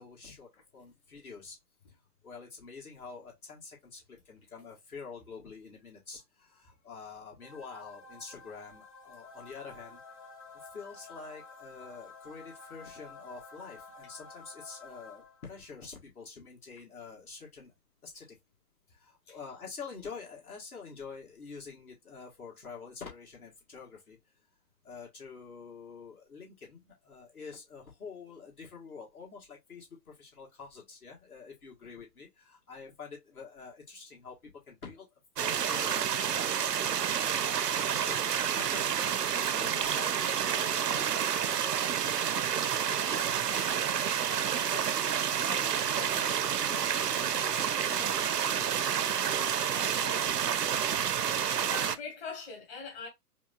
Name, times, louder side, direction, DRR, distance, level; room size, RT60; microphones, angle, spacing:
voice 1, 0.0-1.6 2.2-10.0 10.5-17.7 18.0-18.4 18.9-24.2 24.8-35.1 35.4-37.4 38.0-38.2 38.5-39.1 39.3-43.2 43.4-50.6, left 5 dB, 65° left, 1.9 m, -47 dB
sound 1, 7.4-15.7, left 4 dB, 20° left, 0.6 m, -51 dB
sound 2, 35.4-52.0, right 8 dB, 80° right, 0.5 m, -29 dB
voice 2, 51.7-53.1, left 4 dB, 40° left, 1.6 m, -41 dB
4.8 x 2.1 x 2.5 m
figure-of-eight pair, 125°, 47 cm